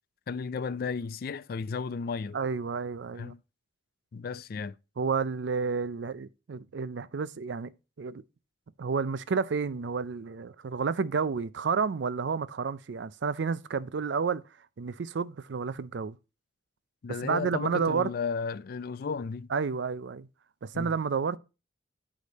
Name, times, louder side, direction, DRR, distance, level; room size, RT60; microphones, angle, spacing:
voice 1, 0.3-2.4 3.2-3.4 4.1-4.8 17.0-19.5 20.7-20.9, left 5 dB, 50° left, 0.3 m, -34 dB
voice 2, 2.3-3.4 5.0-8.2 8.8-14.4 14.8-16.2 17.2-18.1 19.5-20.3 20.6-21.4, right 5 dB, 70° right, 0.4 m, -30 dB
8.4 x 5.0 x 4.0 m
head